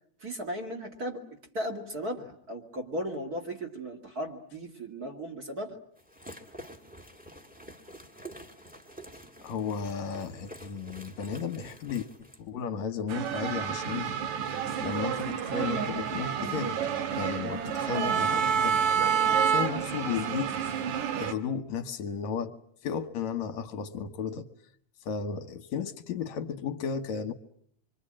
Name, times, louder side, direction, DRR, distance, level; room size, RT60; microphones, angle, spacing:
voice 1, 0.2-1.2 1.5-5.8, equal, 35° right, 3 dB, 2.7 m, -36 dB
sound 1, 6.0-12.4, equal, 5° right, 1.9 m, -48 dB
voice 2, 9.4-12.1 12.4-14.1 14.8-16.8 17.1-18.8 19.4-20.5 21.1-22.5 22.8-24.5 25.1-27.3, left 6 dB, 75° left, 8 dB, 2.6 m, -34 dB
sound 2, 13.1-21.3, right 7 dB, 80° right, 2.8 m, -29 dB
27.0 x 24.0 x 8.8 m, 0.65 s
omnidirectional pair, 3.3 m